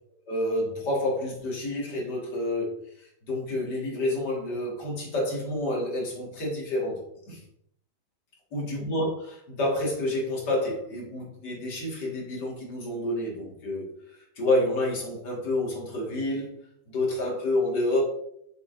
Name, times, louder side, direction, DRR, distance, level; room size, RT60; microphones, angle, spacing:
voice 1, 0.3-2.7 3.3-7.0 7.3-7.4 8.5-13.9 14.4-16.5 16.9-18.0, left 1 dB, 70° left, -3 dB, 2.6 m, -28 dB
6.7 x 6.7 x 2.6 m, 0.72 s
omnidirectional pair, 1.9 m